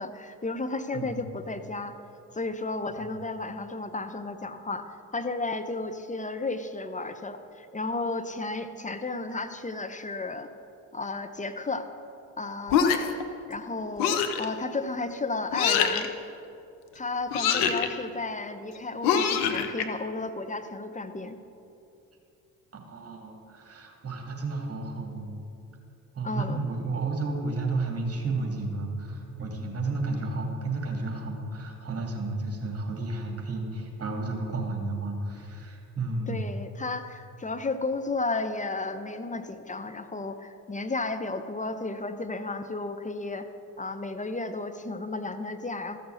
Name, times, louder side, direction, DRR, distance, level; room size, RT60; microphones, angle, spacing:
voice 1, 0.0-2.0 2.3-10.5 10.9-11.9 12.4-13.2 13.5-16.1 16.9-21.4 26.2-26.6 36.3-43.5 43.8-46.0, left 3 dB, 15° left, 9 dB, 0.7 m, -33 dB
sound 1, 12.7-13.2 14.0-14.5 15.5-16.1 17.3-17.9 19.0-19.8, left 7 dB, 70° left, 0.9 m, -24 dB
voice 2, 22.9-25.4 26.1-36.5, right 3 dB, 35° right, 0 dB, 2.8 m, -32 dB
14.0 x 6.8 x 6.7 m, 2.7 s
hypercardioid pair, 50°, 43 cm